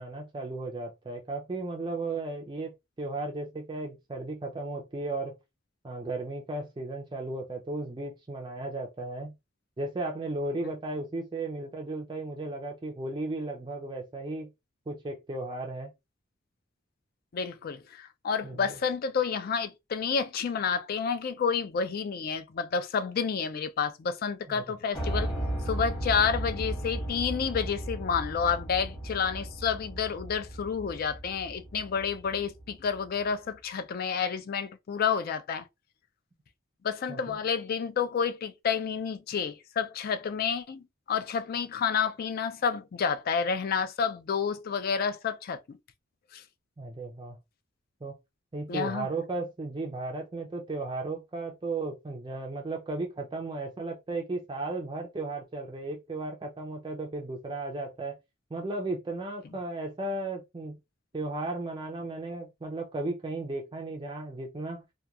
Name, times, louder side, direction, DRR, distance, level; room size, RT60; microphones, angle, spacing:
voice 1, 0.0-2.7 3.0-5.3 5.8-9.3 9.8-14.5 14.9-15.9 18.4-18.8 24.5-24.6 37.1-37.4 46.8-47.4 48.0-48.2 48.5-58.2 58.5-60.8 61.1-64.8, right 2 dB, 25° right, 0.4 m, -35 dB
voice 2, 17.3-25.3 25.6-35.7 36.8-45.8 46.3-46.4 48.7-49.1, left 6 dB, 50° left, 0.3 m, -30 dB
Piano, 24.9-32.9, right 1 dB, 20° left, 1.2 m, -35 dB
2.8 x 2.2 x 2.3 m
head